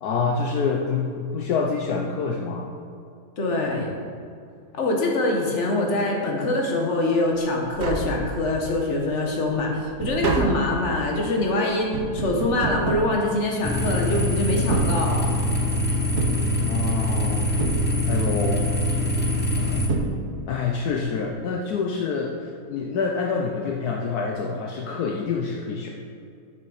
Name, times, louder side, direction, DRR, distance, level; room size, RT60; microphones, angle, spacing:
voice 1, 0.0-2.7 16.6-17.5 18.1-18.8 19.7-19.8 20.5-25.9, left 5 dB, 75° left, 0 dB, 1.2 m, -27 dB
voice 2, 3.4-3.9 4.7-15.3, left 2 dB, 45° left, 0 dB, 1.6 m, -24 dB
Tap, 7.4-7.5 7.6-8.8 9.2-13.9 14.5-15.6 16.2-17.1 17.6-18.4 19.5-19.6 19.9-20.7 21.0-21.1, right 4 dB, 80° right, 1.3 m, -30 dB
sound 1, 13.6-19.9, left 1 dB, 15° left, 0.4 m, -23 dB
6.8 x 6.6 x 6.4 m, 2.4 s
omnidirectional pair, 1.7 m